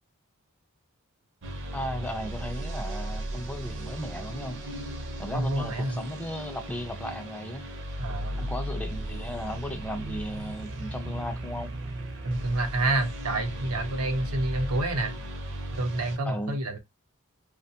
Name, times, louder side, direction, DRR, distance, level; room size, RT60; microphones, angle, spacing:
sound 1, 1.4-16.2, right 1 dB, 55° right, 0.6 m, -36 dB
voice 1, 1.7-4.6 5.2-7.7 8.4-11.7 16.2-16.6, equal, 5° left, 0.3 m, -35 dB
voice 2, 5.3-6.0 8.0-8.5 12.2-15.2 15.7-16.8, right 2 dB, 90° right, 0.7 m, -28 dB
2.7 x 2.2 x 2.7 m
head